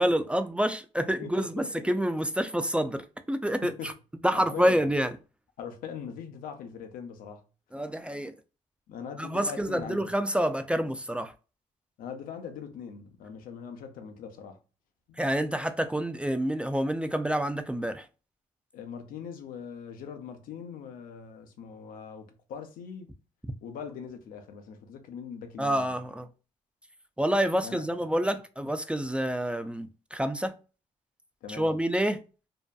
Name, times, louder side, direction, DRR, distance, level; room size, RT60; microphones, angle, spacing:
voice 1, 0.0-3.9 4.2-5.1 7.7-8.3 9.2-11.3 15.2-18.1 25.6-26.3 27.2-30.5 31.5-32.2, equal, 10° right, 0.3 m, -28 dB
voice 2, 1.2-1.9 3.6-3.9 4.3-4.9 5.6-7.4 8.9-10.1 12.0-14.6 15.1-15.2 18.7-23.1 23.6-25.9 27.6-27.8 31.4-31.7, left 7 dB, 85° left, 0.5 m, -41 dB
2.6 x 2.1 x 2.2 m
cardioid pair, 65°, 14 cm